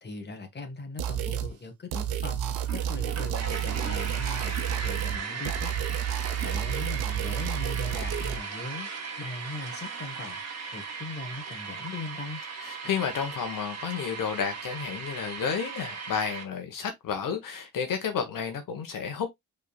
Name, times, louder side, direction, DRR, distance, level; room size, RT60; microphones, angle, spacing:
voice 1, 0.0-5.7 6.4-8.9 9.2-10.4 10.7-12.4, left 3 dB, 30° left, 1.4 m, -39 dB
sound 1, 1.0-1.5 1.9-5.2 5.4-8.4, right 10 dB, 80° right, 0.9 m, -30 dB
sound 2, 2.6-16.4, right 5 dB, 45° right, 1.4 m, -37 dB
voice 2, 12.6-19.3, left 6 dB, 60° left, 1.3 m, -31 dB
4.9 x 3.8 x 2.4 m
cardioid pair, 90°, 36 cm